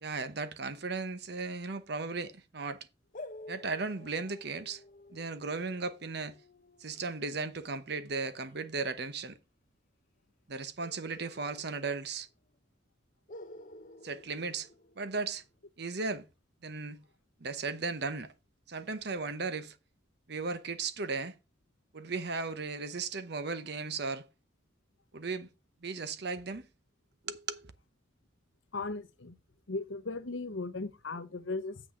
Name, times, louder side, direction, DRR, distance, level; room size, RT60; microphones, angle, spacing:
voice 1, 0.0-2.9 3.5-4.8 5.1-6.4 6.8-9.4 10.5-12.3 14.0-14.7 15.0-15.4 15.8-16.2 16.6-17.0 17.4-18.3 18.7-19.8 20.3-21.3 21.9-24.3 25.1-25.5 25.8-26.6 27.2-27.7, right 4 dB, 55° right, 0.9 m, -36 dB
sound 1, 3.1-8.6 10.8-12.3 12.5-12.6 13.3-15.5, left 2 dB, 45° left, 0.9 m, -52 dB
voice 2, 28.7-29.3 29.7-31.8, left 3 dB, 80° left, 1.0 m, -37 dB
7.7 x 6.3 x 4.9 m
head